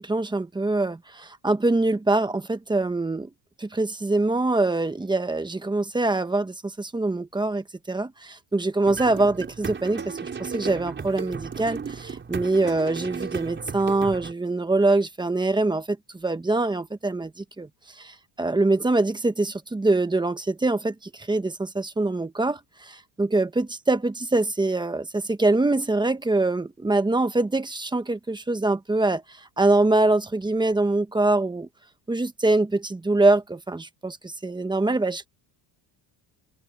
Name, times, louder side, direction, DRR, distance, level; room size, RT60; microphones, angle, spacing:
voice 1, 0.0-3.3 3.6-17.7 18.0-29.2 29.6-31.7 32.1-35.3, right 2 dB, 10° right, 1.1 m, -24 dB
sound 1, 8.8-14.3, right 6 dB, 25° right, 4.9 m, -35 dB
cardioid pair, 150°, 44 cm